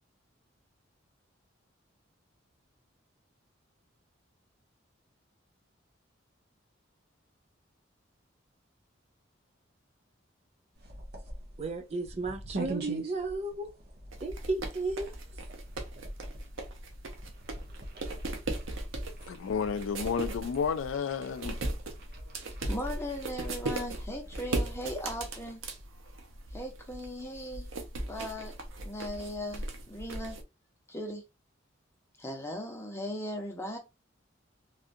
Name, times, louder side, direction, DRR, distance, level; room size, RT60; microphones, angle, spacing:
sound 1, 10.7-25.3, right 2 dB, 55° right, 0.9 m, -45 dB
voice 1, 11.6-13.7 14.2-15.1, right 3 dB, 35° right, 0.5 m, -34 dB
sound 2, 14.1-30.4, right 2 dB, 90° right, 0.8 m, -38 dB
voice 2, 19.3-21.6, left 6 dB, 80° left, 0.4 m, -31 dB
voice 3, 22.7-25.6 26.5-27.7 28.1-28.6 28.8-30.4 30.9-31.2 32.2-33.8, equal, 15° left, 0.9 m, -38 dB
3.3 x 2.5 x 2.6 m
head